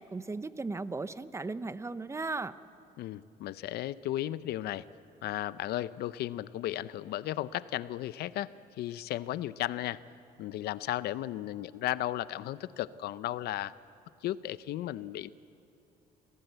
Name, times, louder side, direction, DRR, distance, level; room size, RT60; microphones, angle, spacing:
voice 1, 0.0-2.5, right 3 dB, 15° right, 14 dB, 0.7 m, -36 dB
voice 2, 3.0-4.8 5.2-8.5 8.8-10.0 10.4-13.7 14.2-15.3, left 14 dB, 70° left, 16 dB, 0.6 m, -35 dB
26.5 x 16.5 x 8.0 m, 2.6 s
cardioid pair, 110°, 17 cm